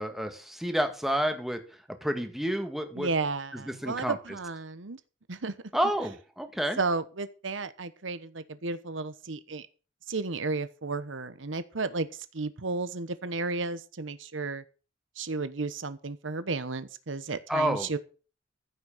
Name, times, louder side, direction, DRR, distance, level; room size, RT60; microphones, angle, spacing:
voice 1, 0.0-1.6 2.0-3.1 3.7-4.2 5.7-6.8 17.5-18.0, equal, ahead, 6 dB, 1.9 m, -29 dB
voice 2, 3.0-5.0 5.3-5.5 6.8-9.7 10.1-12.1 12.3-14.6 15.2-18.0, right 3 dB, 85° right, 13 dB, 1.1 m, -33 dB
15.0 x 6.3 x 7.2 m, 0.36 s
head